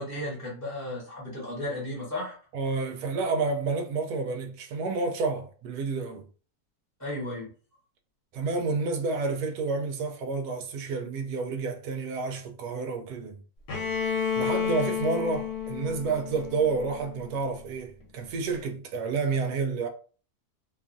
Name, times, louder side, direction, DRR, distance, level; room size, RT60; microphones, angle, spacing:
voice 1, 0.0-2.4 7.0-7.5, left 1 dB, 15° right, 0.7 m, -34 dB
voice 2, 2.5-6.2 8.3-13.4 14.4-19.9, right 4 dB, 80° right, 1.1 m, -30 dB
Bowed string instrument, 13.7-17.5, left 7 dB, 80° left, 1.3 m, -31 dB
2.9 x 2.4 x 2.5 m
omnidirectional pair, 1.7 m